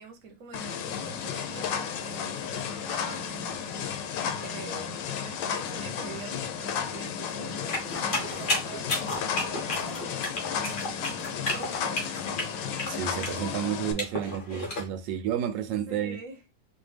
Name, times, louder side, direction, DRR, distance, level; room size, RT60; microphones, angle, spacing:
voice 1, 0.0-7.8 8.0-12.1 14.2-14.7 15.6-16.5, right 4 dB, 55° right, 1.2 m, -46 dB
sound 1, 0.5-13.9, left 7 dB, 90° left, 1.4 m, -33 dB
sound 2, 7.7-14.9, left 2 dB, 35° left, 1.1 m, -32 dB
voice 2, 12.9-16.2, right 9 dB, 90° right, 1.3 m, -31 dB
4.2 x 3.0 x 3.2 m
omnidirectional pair, 1.9 m